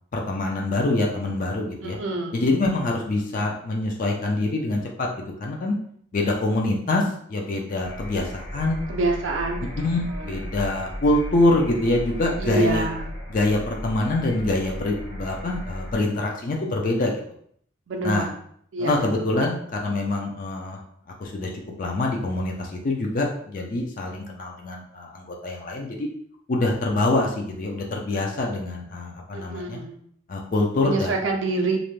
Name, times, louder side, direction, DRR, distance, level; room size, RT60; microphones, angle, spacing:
voice 1, 0.1-2.0 2.3-5.1 5.4-5.8 6.1-8.8 9.8-12.9 13.3-17.1 18.0-18.3 18.8-20.8 21.2-21.5 21.8-26.1 26.5-29.8 30.3-31.2, left 2 dB, 45° left, 0 dB, 0.4 m, -25 dB
voice 2, 1.8-2.4 2.9-3.0 8.9-10.5 12.4-13.1 17.9-18.3 18.7-19.2 29.3-30.0 30.8-31.8, right 2 dB, 70° right, 2 dB, 0.4 m, -27 dB
sound 1, 7.8-16.0, equal, 75° left, 0.9 m, -35 dB
2.5 x 2.1 x 3.0 m, 0.64 s
head